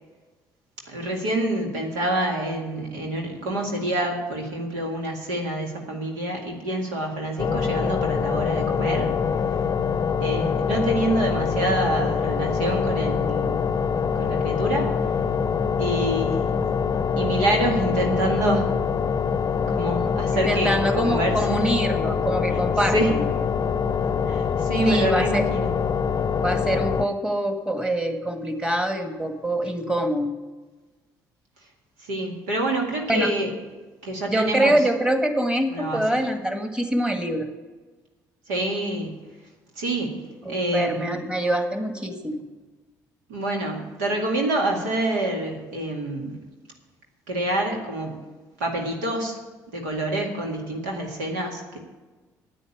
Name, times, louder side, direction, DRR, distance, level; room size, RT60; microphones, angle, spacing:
voice 1, 0.9-9.1 10.2-13.5 14.2-14.9 15.8-16.5 17.2-18.7 19.7-21.8 22.9-23.1 24.3-25.7 32.0-33.5 34.0-34.7 35.7-36.0 38.5-39.2 39.8-40.2 40.5-41.2 43.3-46.4 47.3-48.2 48.6-49.4 49.7-51.8, right 1 dB, 85° right, 1 dB, 2.1 m, -27 dB
sound 1, 7.4-27.1, left 6 dB, 35° left, 0.6 m, -24 dB
voice 2, 20.3-23.0 24.8-25.4 26.4-30.4 33.1-33.3 34.3-37.5 40.4-42.4, right 1 dB, 10° right, 5 dB, 1.9 m, -24 dB
9.5 x 9.1 x 8.5 m, 1.2 s
hypercardioid pair, 55°, 9 cm